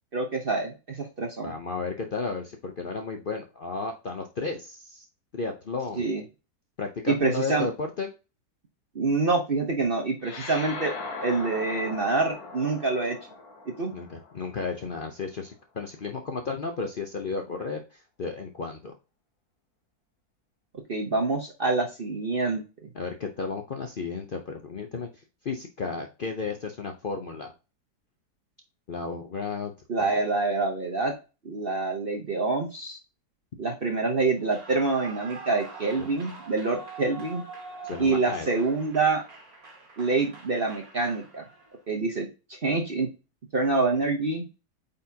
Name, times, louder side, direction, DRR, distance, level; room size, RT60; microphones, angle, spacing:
voice 1, 0.1-1.5 6.0-6.2 7.1-7.7 8.9-10.9 11.2-13.2 13.7-13.9 20.9-22.6 29.9-31.1 31.4-33.0 33.6-37.4 38.0-39.2 40.0-41.5 41.9-42.3 42.6-43.1 43.5-44.4, right 3 dB, 40° right, 2 dB, 1.0 m, -26 dB
voice 2, 1.4-5.1 5.3-6.0 6.8-8.1 13.9-18.9 22.9-25.1 25.4-27.5 28.9-29.7 30.0-30.1 37.8-38.5, left 4 dB, 50° left, 4 dB, 0.7 m, -33 dB
sound 1, 10.2-15.0, left 3 dB, 70° left, 1.5 m, -39 dB
Clapping / Cheering / Applause, 34.4-41.8, right 4 dB, 65° right, 2.2 m, -44 dB
8.5 x 4.2 x 2.8 m, 0.30 s
omnidirectional pair, 1.7 m